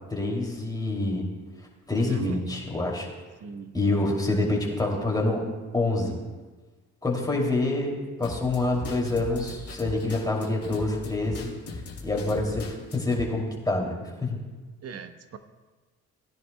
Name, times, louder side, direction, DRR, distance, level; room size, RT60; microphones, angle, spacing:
voice 1, 0.1-1.3 1.9-3.1 3.7-5.4 5.7-6.2 7.0-11.5 12.0-14.4, left 2 dB, 15° left, -2 dB, 2.7 m, -27 dB
voice 2, 2.1-2.4 3.4-3.8 4.3-4.6 14.8-15.4, right 6 dB, 55° right, 9 dB, 0.9 m, -37 dB
sound 1, 8.2-13.2, left 4 dB, 50° left, 2.3 m, -38 dB
18.0 x 10.5 x 2.3 m, 1.3 s
cardioid pair, 90°, 30 cm